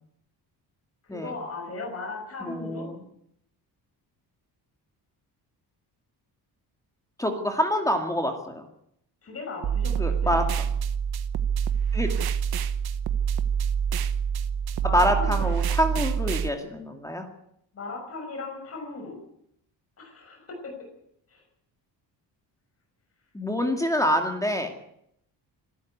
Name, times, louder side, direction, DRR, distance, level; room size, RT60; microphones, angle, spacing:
voice 1, 1.1-2.9 9.2-10.4 14.8-15.4 17.7-19.2 20.0-20.5 21.3-21.4, left 3 dB, 35° left, 1 dB, 6.1 m, -37 dB
voice 2, 2.4-3.0 7.2-8.6 10.0-10.7 11.9-12.1 14.9-17.2 23.3-24.7, equal, 10° left, 4 dB, 2.3 m, -26 dB
sound 1, 9.6-16.5, right 7 dB, 60° right, 1.2 m, -26 dB
25.5 x 12.5 x 9.5 m, 0.75 s
cardioid pair, 150°, 41 cm